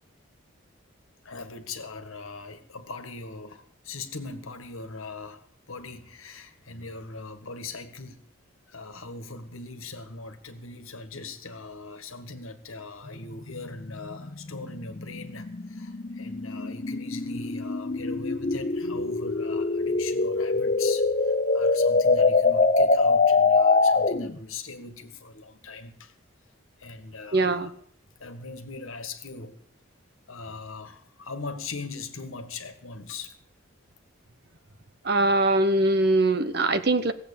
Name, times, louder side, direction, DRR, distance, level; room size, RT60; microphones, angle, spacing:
voice 1, 1.2-8.2 8.7-26.1 26.8-27.7 28.2-29.6 30.3-33.4, left 3 dB, 80° left, 1.7 m, -40 dB
sound 1, 13.1-24.4, left 3 dB, 40° left, 0.7 m, -24 dB
voice 2, 27.3-27.7 35.0-37.1, right 2 dB, 50° right, 1.0 m, -22 dB
17.0 x 7.8 x 8.6 m
head